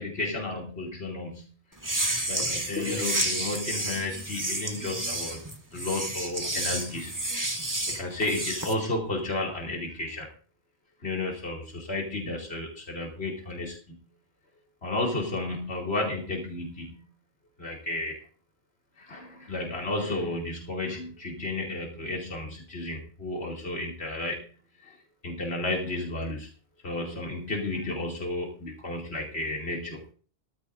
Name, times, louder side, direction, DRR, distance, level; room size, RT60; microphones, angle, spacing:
voice 1, 0.0-1.4 2.2-5.4 5.7-7.1 7.9-10.3 11.0-13.9 14.8-16.9 17.6-18.2 19.0-24.4 24.8-25.0 25.2-26.5 26.8-30.0, left 2 dB, 75° left, -1 dB, 2.9 m, -32 dB
sound 1, 1.8-8.7, right 1 dB, 20° right, 1.5 m, -31 dB
17.5 x 14.0 x 2.6 m, 0.40 s
omnidirectional pair, 1.1 m